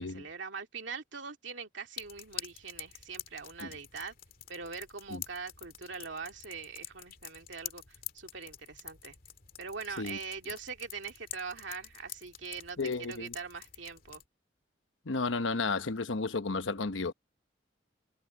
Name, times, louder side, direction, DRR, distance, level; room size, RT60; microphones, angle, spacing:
voice 1, 0.0-4.1 4.5-7.8 8.1-9.2 9.6-14.2, right 5 dB, 75° right, 2.5 m, -42 dB
sound 1, 2.0-14.3, left 11 dB, 50° left, 2.2 m, -47 dB
voice 2, 12.8-13.3 15.0-17.1, left 3 dB, 85° left, 1.0 m, -33 dB
head